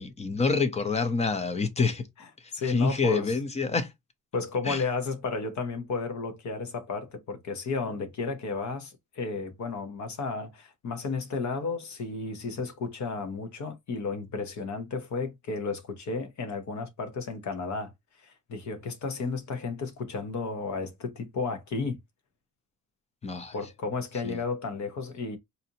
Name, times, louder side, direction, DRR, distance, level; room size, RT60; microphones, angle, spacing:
voice 1, 0.0-2.1 2.7-3.9 4.6-4.8 23.2-23.5 24.2-24.4, left 4 dB, 20° left, 0.5 m, -27 dB
voice 2, 2.5-3.3 4.3-17.9 18.2-22.0 23.5-25.4, left 4 dB, 60° left, 1.0 m, -33 dB
4.2 x 2.6 x 2.8 m
wide cardioid pair, 160°, 32 cm